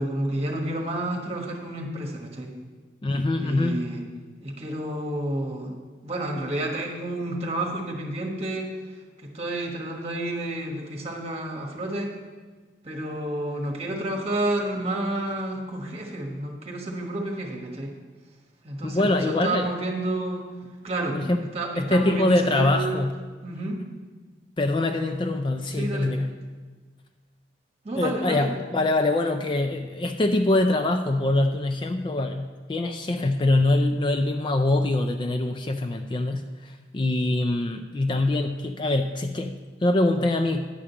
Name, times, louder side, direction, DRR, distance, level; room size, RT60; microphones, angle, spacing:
voice 1, 0.0-2.5 3.4-4.0 4.4-5.7 6.0-8.7 9.3-12.1 12.8-17.9 18.6-20.4 20.8-21.2 21.5-23.0 23.4-23.8 25.8-26.1 27.8-28.5, right 1 dB, 35° right, 0 dB, 1.4 m, -30 dB
voice 2, 3.0-3.8 18.8-19.6 21.1-21.4 21.8-23.1 24.6-26.3 28.0-40.7, left 2 dB, 25° left, 6 dB, 0.4 m, -24 dB
9.9 x 5.0 x 7.0 m, 1.4 s
head